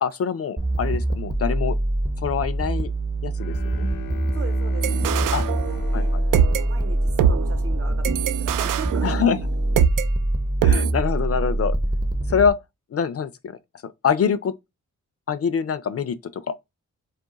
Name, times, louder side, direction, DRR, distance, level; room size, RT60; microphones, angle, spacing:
voice 1, 0.0-1.8 2.2-2.9 3.2-3.9 5.3-5.4 5.9-6.0 9.0-9.4 10.6-11.8 12.3-12.5 12.9-14.5 15.3-16.6, left 7 dB, 45° left, 0.5 m, -24 dB
sound 1, 0.6-12.5, right 1 dB, 15° right, 0.6 m, -24 dB
Bowed string instrument, 3.3-7.6, left 9 dB, 80° left, 0.8 m, -39 dB
voice 2, 4.3-6.1 6.7-9.3, right 5 dB, 45° right, 0.9 m, -39 dB
sound 2, 4.8-6.0 6.3-10.1 10.6-10.9, right 9 dB, 70° right, 0.5 m, -23 dB
2.4 x 2.2 x 3.9 m
cardioid pair, 55°, 32 cm